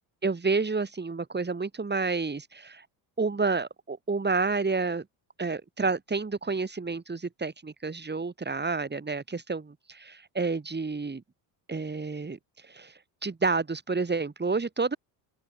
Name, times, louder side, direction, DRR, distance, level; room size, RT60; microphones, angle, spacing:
voice 1, 0.2-2.8 3.2-5.0 5.4-11.2 11.7-12.4 12.7-12.9 13.2-15.0, right 4 dB, 20° right, 6.6 m, -29 dB
open air
supercardioid pair, 80°, 50 cm